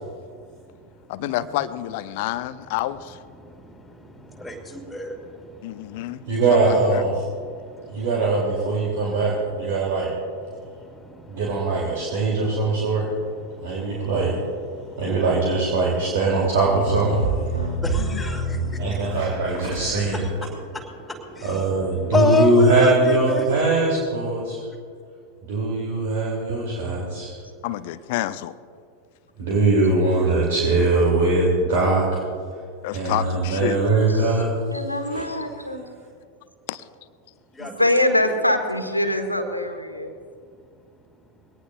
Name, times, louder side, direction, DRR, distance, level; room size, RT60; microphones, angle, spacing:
voice 1, 0.3-1.1 3.3-6.4 7.4-8.1 8.7-9.2 9.7-9.8 10.1-14.1 14.7-15.2 17.5-21.7 22.0-23.5 37.5-38.4, left 3 dB, 5° left, -1 dB, 2.8 m, -31 dB
voice 2, 1.1-3.2 5.6-6.2 6.5-7.0 18.0-18.2 27.6-28.5 32.8-33.8 36.7-36.8, left 14 dB, 50° left, 15 dB, 0.6 m, -28 dB
voice 3, 6.3-7.1 7.9-10.1 11.3-13.1 13.6-14.4 15.0-17.2 18.8-20.2 21.4-24.6 25.4-27.4 29.4-32.2 32.9-34.6 35.1-35.2, right 3 dB, 55° right, -3 dB, 3.0 m, -21 dB
sound 1, 16.6-19.7, right 2 dB, 85° right, 2.7 m, -27 dB
voice 4, 34.7-35.9 37.6-40.1, left 1 dB, 85° left, 6 dB, 1.5 m, -23 dB
22.5 x 18.0 x 2.6 m, 2.2 s
figure-of-eight pair, 90°, 0 cm